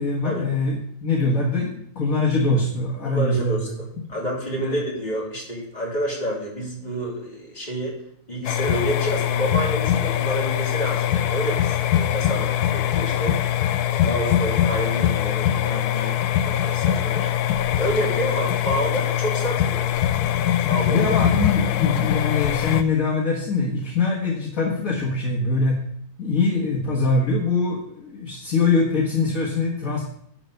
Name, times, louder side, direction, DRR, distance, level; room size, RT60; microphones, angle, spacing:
voice 1, 0.0-3.8 4.6-4.8 20.9-25.8 26.2-30.1, left 3 dB, 60° left, -3 dB, 1.9 m, -23 dB
voice 2, 3.0-8.0 8.3-13.4 13.9-17.3 17.8-19.9 20.7-21.0, equal, 25° left, -4 dB, 3.2 m, -29 dB
sound 1, 8.4-22.8, left 11 dB, 85° left, 1.1 m, -22 dB
10.5 x 4.5 x 6.6 m, 0.67 s
omnidirectional pair, 1.6 m